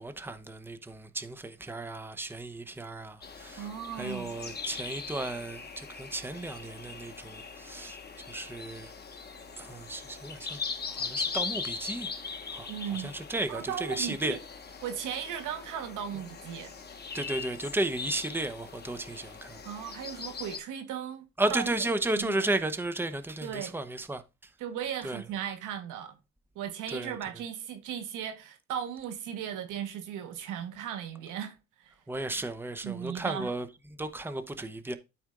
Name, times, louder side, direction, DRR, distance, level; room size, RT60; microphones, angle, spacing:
voice 1, 0.0-3.7 4.0-8.0 8.3-8.9 9.6-10.6 10.9-12.1 12.5-12.7 13.0-14.4 17.1-19.6 21.4-24.2 25.0-25.2 26.9-27.2 32.1-33.7 34.0-35.0, right 2 dB, 5° right, 0.8 m, -34 dB
sound 1, 3.2-20.6, left 5 dB, 35° left, 1.3 m, -40 dB
voice 2, 3.6-4.3 12.7-13.1 13.5-14.4 14.8-16.7 19.6-21.2 21.5-21.7 22.1-22.5 23.4-23.7 24.6-26.2 26.5-32.0 32.8-33.5, right 9 dB, 90° right, 1.2 m, -37 dB
13.0 x 4.3 x 2.4 m
cardioid pair, 90°, 30 cm